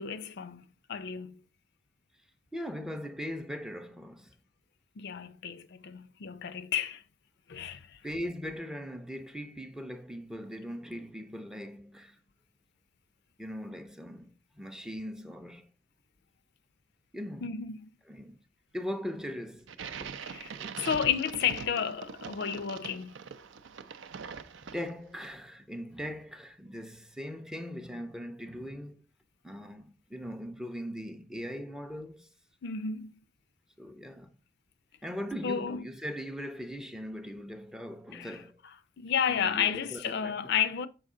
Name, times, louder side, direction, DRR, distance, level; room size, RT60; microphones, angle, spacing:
voice 1, 0.0-1.4 5.0-7.0 7.5-8.0 17.4-17.9 20.2-23.2 32.6-33.1 35.4-35.8 38.1-38.4 39.0-40.9, left 7 dB, 55° left, 0.4 m, -32 dB
voice 2, 2.5-4.3 8.0-12.2 13.4-15.7 17.1-17.6 18.1-18.4 18.7-19.7 20.0-20.2 20.5-20.9 24.4-29.1 29.4-32.3 33.8-34.3 35.0-38.6 39.3-40.4, equal, 5° right, 0.5 m, -40 dB
sound 1, 19.7-25.2, right 6 dB, 65° right, 0.5 m, -43 dB
6.4 x 4.9 x 3.7 m
head